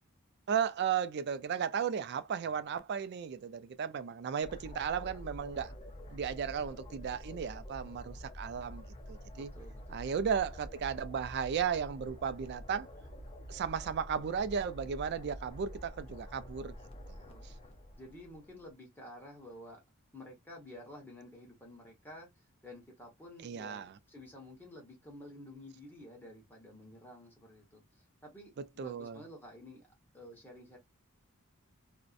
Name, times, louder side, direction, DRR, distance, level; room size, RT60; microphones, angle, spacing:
voice 1, 0.5-5.7 6.1-8.8 9.1-9.5 9.9-12.9 13.5-16.7 17.1-17.2 23.4-23.9 28.6-29.2, right 7 dB, 50° right, 0.3 m, -35 dB
sound 1, 4.4-18.7, equal, 25° left, 0.4 m, -48 dB
voice 2, 9.3-10.0 17.3-17.5 18.0-19.8 20.1-29.9 30.1-30.8, left 1 dB, 10° left, 1.0 m, -51 dB
2.5 x 2.1 x 2.4 m
head